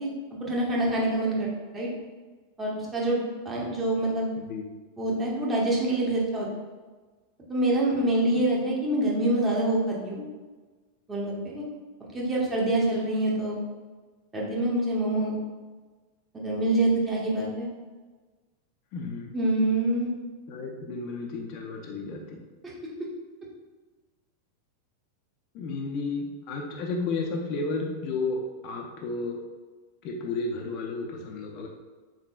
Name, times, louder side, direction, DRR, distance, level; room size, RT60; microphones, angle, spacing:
voice 1, 0.0-1.9 2.6-4.3 5.0-6.5 7.5-10.2 11.1-11.6 12.1-13.6 14.3-15.3 16.3-17.7 19.3-20.1, right 1 dB, 15° right, -4 dB, 1.0 m, -26 dB
voice 2, 4.4-4.7 8.4-8.5 18.9-19.4 20.5-22.4 25.5-29.4 30.0-31.7, left 3 dB, 40° left, 0 dB, 0.5 m, -32 dB
3.9 x 3.7 x 2.4 m, 1.3 s
figure-of-eight pair, 90°, 0 cm